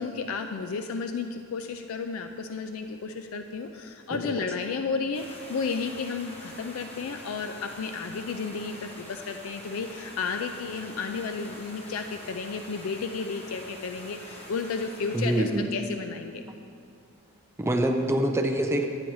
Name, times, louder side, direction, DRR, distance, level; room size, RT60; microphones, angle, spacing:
voice 1, 0.0-16.4, left 5 dB, 75° left, 6 dB, 0.4 m, -33 dB
sound 1, 5.1-15.6, left 1 dB, 30° left, 0.9 m, -45 dB
voice 2, 15.1-15.7 17.6-18.9, right 1 dB, 10° right, 4 dB, 0.4 m, -25 dB
10.5 x 8.7 x 3.1 m, 2.4 s
head